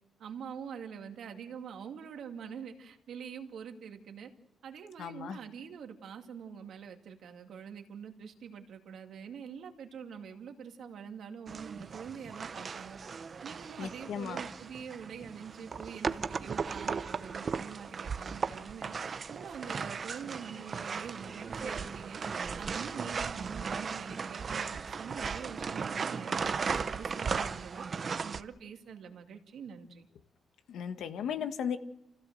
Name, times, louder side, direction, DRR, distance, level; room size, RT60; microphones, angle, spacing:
voice 1, 0.2-4.3 4.6-13.0 13.4-18.9 19.3-22.2 22.5-27.8 28.2-30.1, right 7 dB, 65° right, 4 dB, 2.4 m, -45 dB
voice 2, 5.0-5.4 13.8-14.4 30.7-31.8, left 8 dB, 75° left, 9 dB, 1.5 m, -36 dB
sound 1, 11.5-28.4, right 5 dB, 35° right, 0.7 m, -36 dB
28.0 x 16.0 x 7.7 m, 0.85 s
cardioid pair, 145°, 0 cm